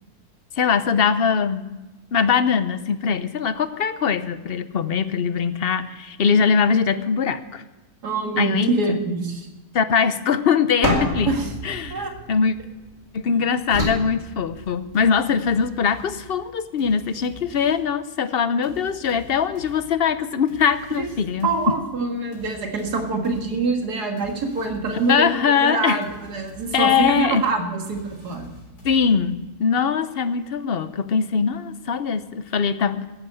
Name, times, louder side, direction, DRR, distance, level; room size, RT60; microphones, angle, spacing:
voice 1, 0.6-1.8 2.1-7.6 8.4-9.0 9.7-11.3 11.6-12.6 13.1-21.5 25.1-26.0 26.7-27.4 28.8-33.0, left 6 dB, 50° left, 12 dB, 0.8 m, -22 dB
voice 2, 8.0-9.5 11.3-11.5 11.9-12.1 13.3-13.4 21.0-21.1 21.4-28.5, right 3 dB, 90° right, 3 dB, 2.4 m, -25 dB
sound 1, 10.8-13.0 13.7-15.1, right 1 dB, 60° right, 3.2 m, -28 dB
sound 2, 14.9-18.0 18.6-25.4 26.0-29.5, left 1 dB, 80° left, 4.0 m, -46 dB
14.0 x 11.0 x 7.8 m, 1.1 s
omnidirectional pair, 1.7 m